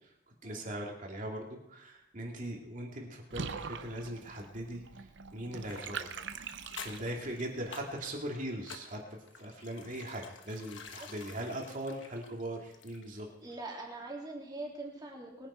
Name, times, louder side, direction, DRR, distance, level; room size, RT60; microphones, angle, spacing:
voice 1, 0.4-4.8 5.3-6.1 6.8-13.3, right 1 dB, 40° right, 0 dB, 2.5 m, -40 dB
Water / Bathtub (filling or washing), 3.3-7.4, right 5 dB, 65° right, 0.7 m, -43 dB
sound 1, 5.7-13.3 13.5-13.6, left 6 dB, 70° left, 1.2 m, -50 dB
voice 2, 13.4-15.5, right 2 dB, 20° right, -2 dB, 3.0 m, -43 dB
21.0 x 10.0 x 4.3 m, 0.86 s
head